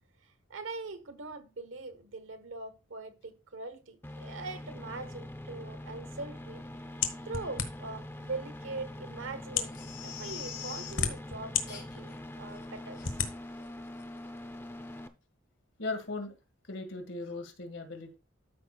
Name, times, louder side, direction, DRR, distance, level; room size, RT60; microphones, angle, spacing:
voice 1, 0.5-6.6 7.3-13.2, right 3 dB, 80° right, 1.2 m, -42 dB
sound 1, 4.0-15.1, left 1 dB, 10° left, 0.6 m, -44 dB
sound 2, 7.0-8.0 8.8-8.9 9.4-9.8 10.6-11.6 12.2-12.3 13.0-13.3, left 7 dB, 90° left, 1.3 m, -31 dB
Crying sobbing, 9.6-11.1 11.7-12.1 12.5-12.6 13.0-13.1 13.6-13.7 14.0-14.1, left 9 dB, 55° left, 2.3 m, -44 dB
voice 2, 15.8-16.3 16.7-18.1, left 3 dB, 70° left, 1.8 m, -38 dB
13.0 x 5.9 x 2.3 m
head